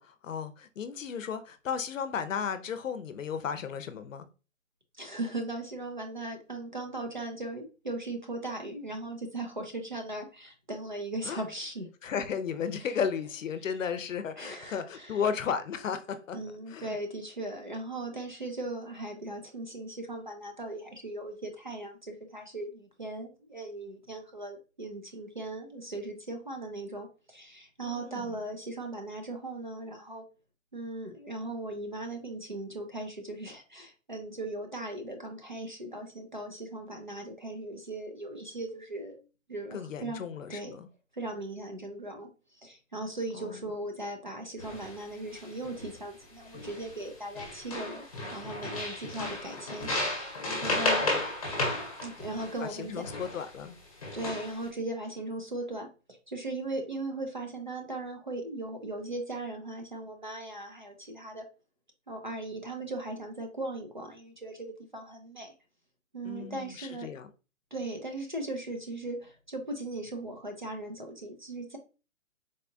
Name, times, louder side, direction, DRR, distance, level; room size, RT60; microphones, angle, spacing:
voice 1, 0.0-4.3 11.2-11.4 12.0-16.4 16.7-17.0 27.8-28.4 39.7-40.9 43.3-43.7 52.6-53.8 66.2-67.3, left 7 dB, 70° left, 0.6 m, -34 dB
voice 2, 5.0-11.9 14.4-15.2 16.3-30.2 30.7-39.2 39.5-40.8 41.1-42.3 42.6-48.1 48.3-49.9 50.6-51.0 52.0-53.0 54.1-61.4 62.1-65.5 66.1-67.1 67.7-71.8, right 2 dB, 40° right, 0.4 m, -38 dB
sound 1, 44.6-45.0 45.3-46.0 46.5-47.1 47.3-53.5 54.0-54.6, left 2 dB, 25° left, 0.9 m, -33 dB
4.0 x 2.3 x 2.5 m
hypercardioid pair, 180°, 40 cm